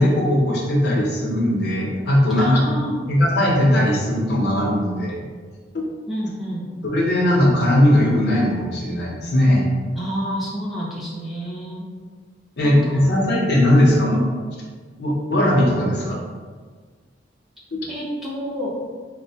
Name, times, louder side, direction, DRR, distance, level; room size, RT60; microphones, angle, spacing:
voice 1, 0.0-2.6 3.1-5.2 5.7-5.8 6.8-9.6 12.6-14.2 15.0-16.2 17.7-17.8, left 1 dB, 55° left, -3 dB, 0.6 m, -18 dB
voice 2, 2.4-3.0 6.1-6.7 10.0-11.9 12.6-13.1 17.9-18.9, equal, ahead, -7 dB, 0.5 m, -29 dB
3.9 x 2.1 x 2.7 m, 1.5 s
head